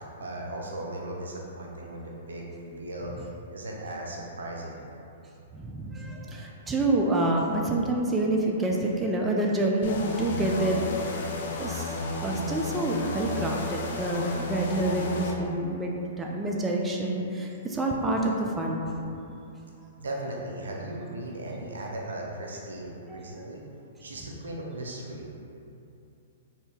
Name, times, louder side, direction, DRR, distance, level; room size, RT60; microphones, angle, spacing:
voice 1, 0.2-3.1 3.5-4.8 20.0-23.6 24.0-25.3, right 1 dB, 80° right, -2 dB, 0.6 m, -37 dB
voice 2, 5.5-10.9 11.6-18.9, right 2 dB, 15° right, -1 dB, 0.3 m, -27 dB
sound 1, 9.8-15.4, left 2 dB, 60° left, 0.4 m, -32 dB
2.8 x 2.6 x 3.4 m, 2.7 s
hypercardioid pair, 120°, 0 cm